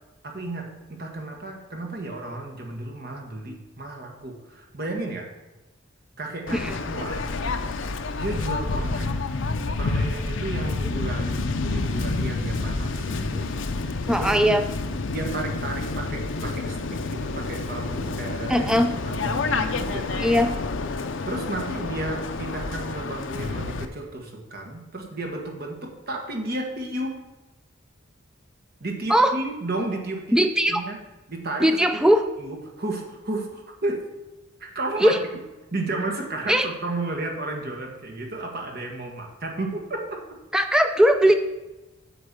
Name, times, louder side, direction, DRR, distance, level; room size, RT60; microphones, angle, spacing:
voice 1, 0.2-5.3 6.2-7.3 8.1-9.2 9.8-13.5 13.8-14.5 15.1-18.7 19.0-20.5 21.2-27.2 28.8-30.4 30.7-31.0 31.3-31.7 32.4-34.0 34.6-35.2 35.7-40.2, right 2 dB, 50° right, 1 dB, 1.5 m, -33 dB
Waves surf, 6.5-23.9, left 3 dB, 65° left, 0.6 m, -29 dB
voice 2, 14.1-14.6 18.5-18.9 20.2-20.5 29.1-29.3 30.3-30.8 31.6-32.2 35.0-35.2 36.5-36.7 40.5-41.3, equal, 5° right, 7 dB, 0.3 m, -19 dB
8.3 x 4.5 x 6.8 m, 1.1 s
head